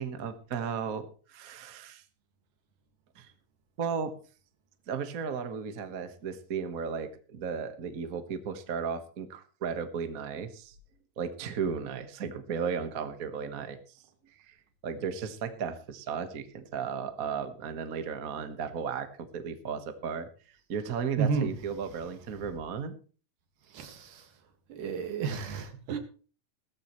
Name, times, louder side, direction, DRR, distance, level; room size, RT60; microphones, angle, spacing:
voice 1, 0.0-2.0 3.1-3.3 3.8-4.1 4.9-10.7 11.2-13.8 14.5-14.6 14.8-20.3 20.7-22.9, right 6 dB, 60° right, 8 dB, 0.9 m, -35 dB
voice 2, 21.2-21.5 23.7-24.2 24.7-26.0, right 6 dB, 75° right, 6 dB, 3.4 m, -31 dB
16.5 x 14.0 x 3.1 m, 0.37 s
omnidirectional pair, 3.8 m